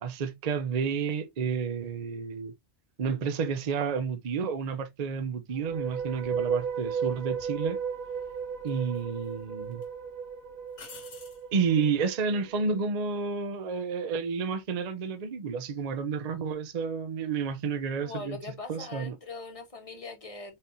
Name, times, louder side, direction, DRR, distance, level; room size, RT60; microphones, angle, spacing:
voice 1, 0.0-2.5 3.0-7.8 8.6-9.8 11.5-18.4 18.7-19.1, right 5 dB, 45° right, 0.5 m, -30 dB
sound 1, 5.5-12.8, right 6 dB, 85° right, 1.3 m, -35 dB
sound 2, 7.4-7.6 8.7-9.3 9.7-9.9 10.7-11.5 14.6-14.9, left 5 dB, 70° left, 1.4 m, -49 dB
voice 2, 18.0-20.6, left 3 dB, 30° left, 0.9 m, -41 dB
4.3 x 3.6 x 2.6 m
omnidirectional pair, 1.4 m